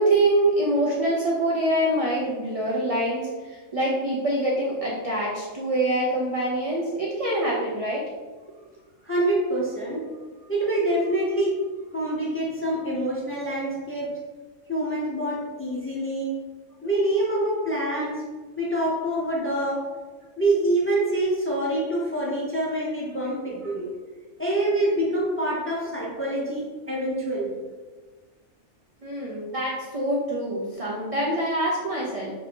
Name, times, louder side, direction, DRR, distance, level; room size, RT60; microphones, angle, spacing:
voice 1, 0.0-8.0 23.6-23.7 29.0-32.3, right 1 dB, 65° right, -4 dB, 0.3 m, -25 dB
voice 2, 9.0-10.0 10.5-11.6 11.9-14.1 14.7-16.4 16.8-18.2 18.6-19.8 20.4-23.9 24.4-27.6, right 1 dB, 15° left, -5 dB, 0.4 m, -26 dB
2.7 x 2.6 x 4.2 m, 1.4 s
omnidirectional pair, 1.3 m